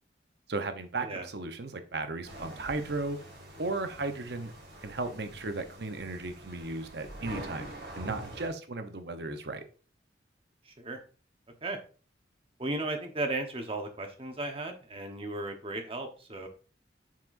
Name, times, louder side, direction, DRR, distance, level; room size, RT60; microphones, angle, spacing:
voice 1, 0.5-3.2 3.6-4.5 4.8-9.6, right 3 dB, 65° right, 8 dB, 0.8 m, -35 dB
sound 1, 2.2-8.5, right 1 dB, 85° right, 3.7 m, -45 dB
voice 2, 12.6-16.5, right 2 dB, 30° right, 5 dB, 1.1 m, -35 dB
7.4 x 5.9 x 2.6 m, 0.37 s
head